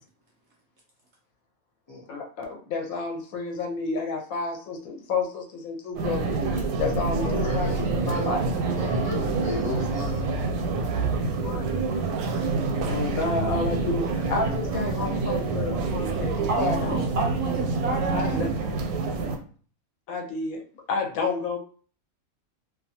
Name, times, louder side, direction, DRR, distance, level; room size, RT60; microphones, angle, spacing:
voice 1, 2.1-6.3 6.8-8.5 11.4-11.7 12.9-17.0 18.1-18.5 20.1-20.6 20.9-21.6, left 3 dB, 75° left, 2 dB, 1.1 m, -30 dB
sound 1, 6.0-19.4, right 3 dB, 85° right, 1.1 m, -27 dB
voice 2, 7.2-8.3 8.7-10.3, left 2 dB, 35° left, -5 dB, 0.4 m, -35 dB
voice 3, 16.3-18.4, right 3 dB, 65° right, 0 dB, 0.7 m, -30 dB
2.6 x 2.2 x 2.7 m, 0.42 s
omnidirectional pair, 1.6 m